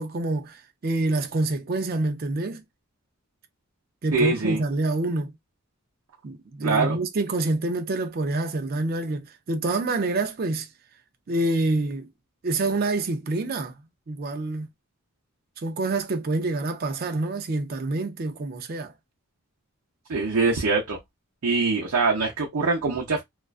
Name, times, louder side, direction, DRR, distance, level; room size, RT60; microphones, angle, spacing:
voice 1, 0.0-2.6 4.0-5.3 6.2-10.7 11.3-12.1 12.4-13.7 14.1-14.7 15.6-18.9, right 2 dB, 45° right, 0.4 m, -27 dB
voice 2, 4.1-4.6 6.6-7.0 20.1-21.0 21.4-23.2, right 3 dB, 80° right, 0.6 m, -23 dB
2.4 x 2.2 x 2.4 m
head